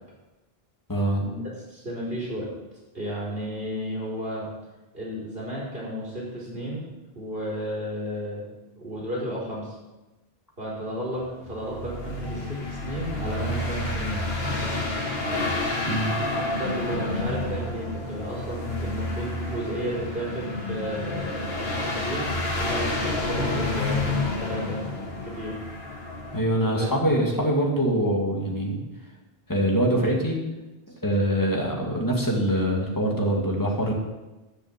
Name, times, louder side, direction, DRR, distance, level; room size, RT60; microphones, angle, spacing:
voice 1, 0.9-1.2 15.9-16.2 26.3-28.8 29.5-30.4 31.0-33.9, right 1 dB, 20° left, -2 dB, 2.4 m, -24 dB
voice 2, 1.7-2.5 2.9-4.5 4.9-6.8 7.1-8.4 8.8-9.7 10.6-14.3 16.6-24.8 25.2-25.6 26.6-26.9, equal, 70° right, -5 dB, 4.8 m, -33 dB
sound 1, 11.2-26.4, left 2 dB, 75° left, 2.0 m, -29 dB
12.5 x 6.6 x 7.7 m, 1.1 s
omnidirectional pair, 1.0 m